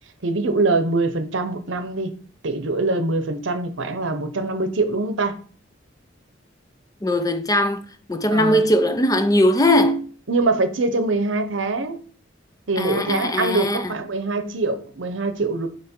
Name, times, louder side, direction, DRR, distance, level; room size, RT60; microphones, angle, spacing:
voice 1, 0.2-2.1 2.4-5.3 8.3-8.6 10.3-12.0 12.7-15.7, right 3 dB, 80° right, 0.8 m, -23 dB
voice 2, 7.0-7.8 8.1-10.0 12.8-13.9, left 1 dB, 20° left, 0.5 m, -19 dB
8.3 x 3.1 x 4.4 m
head